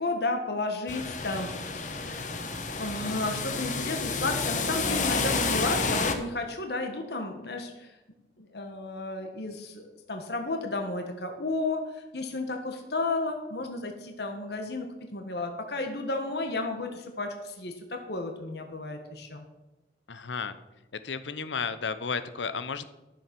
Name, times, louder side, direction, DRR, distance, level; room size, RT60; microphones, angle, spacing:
voice 1, 0.0-2.2 2.8-7.9 8.4-19.4, left 2 dB, 65° left, 4 dB, 1.4 m, -33 dB
sound 1, 0.9-6.1, left 4 dB, 40° left, 1.2 m, -30 dB
voice 2, 20.1-20.6 21.0-22.9, left 5 dB, 90° left, 12 dB, 0.8 m, -33 dB
13.0 x 7.2 x 6.0 m, 1.0 s
head